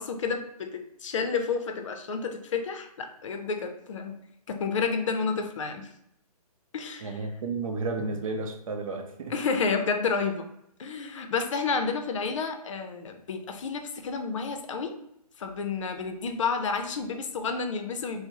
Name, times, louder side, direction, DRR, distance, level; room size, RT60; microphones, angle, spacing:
voice 1, 0.0-4.2 4.5-5.9 6.7-7.1 9.3-10.5 10.8-14.9 15.4-18.3, left 5 dB, 50° left, 6 dB, 0.5 m, -30 dB
voice 2, 7.0-9.3, right 3 dB, 60° right, 4 dB, 0.6 m, -32 dB
4.3 x 2.0 x 2.9 m, 0.77 s
hypercardioid pair, 150°, 20 cm